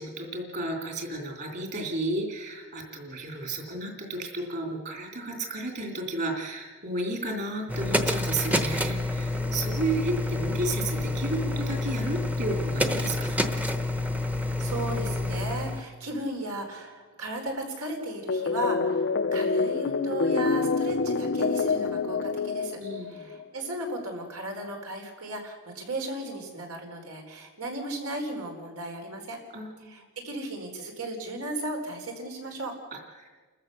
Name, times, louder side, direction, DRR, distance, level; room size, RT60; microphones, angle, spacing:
voice 1, 0.0-13.6 22.8-23.3 29.5-29.9 32.9-33.3, right 2 dB, 50° right, 2 dB, 3.1 m, -33 dB
sound 1, 7.7-15.8, left 2 dB, 5° right, 0.9 m, -28 dB
voice 2, 9.3-9.7 14.4-22.8 23.1-29.4 29.9-32.7, right 1 dB, 85° right, 2 dB, 4.4 m, -36 dB
sound 2, 18.3-23.4, left 4 dB, 50° left, 0.5 m, -27 dB
29.5 x 14.5 x 6.7 m, 1.4 s
head